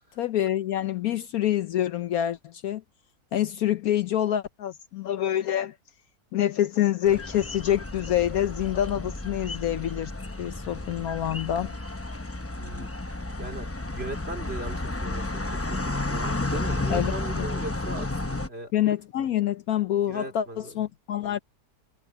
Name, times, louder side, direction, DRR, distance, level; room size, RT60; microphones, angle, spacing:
voice 1, 0.2-2.8 3.3-5.7 6.3-10.1 10.4-11.7 16.9-17.5 18.7-21.4, left 11 dB, 70° left, 1.1 m, -26 dB
sound 1, 7.0-18.5, left 2 dB, 15° left, 0.4 m, -32 dB
voice 2, 13.4-18.7 20.0-20.8, right 2 dB, 35° right, 3.3 m, -39 dB
omnidirectional pair, 1.8 m